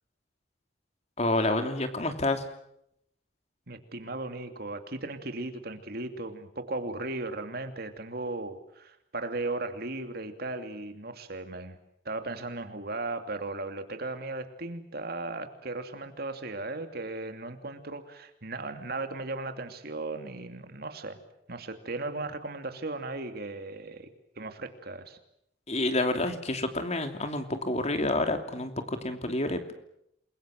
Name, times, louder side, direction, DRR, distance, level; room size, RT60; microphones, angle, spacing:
voice 1, 1.2-2.4 25.7-29.7, left 2 dB, 40° left, 7 dB, 3.0 m, -29 dB
voice 2, 3.7-11.8 12.0-21.2 21.5-24.1 24.4-25.2, right 2 dB, 60° right, 7 dB, 2.8 m, -36 dB
28.5 x 22.5 x 7.7 m, 0.76 s
head